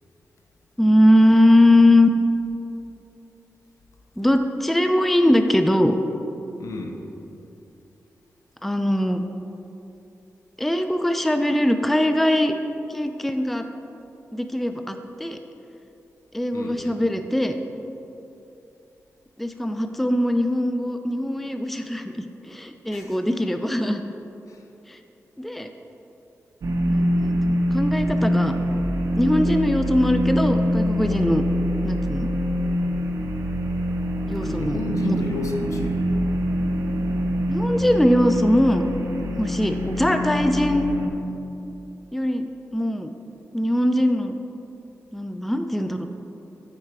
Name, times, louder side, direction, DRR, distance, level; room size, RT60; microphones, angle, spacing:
voice 1, 0.8-2.1 4.2-6.0 8.6-9.2 10.6-12.5 12.9-13.6 14.3-15.4 16.3-17.5 19.4-24.0 24.9-25.0 25.4-25.7 26.9-28.5 29.2-31.4 31.8-32.3 34.3-34.8 35.0-35.2 37.5-38.9 39.4-40.9 42.1-42.5 42.7-43.1 43.5-44.4 45.1-46.1, left 1 dB, 5° left, 7 dB, 0.4 m, -21 dB
voice 2, 6.6-7.0 16.5-17.0 22.9-23.2 24.5-24.6 34.4-36.0, left 2 dB, 75° left, 3 dB, 0.8 m, -31 dB
sound 1, 26.6-41.1, equal, 80° right, 0.7 m, -24 dB
8.7 x 4.4 x 4.7 m, 2.8 s
wide cardioid pair, 95°, 5 cm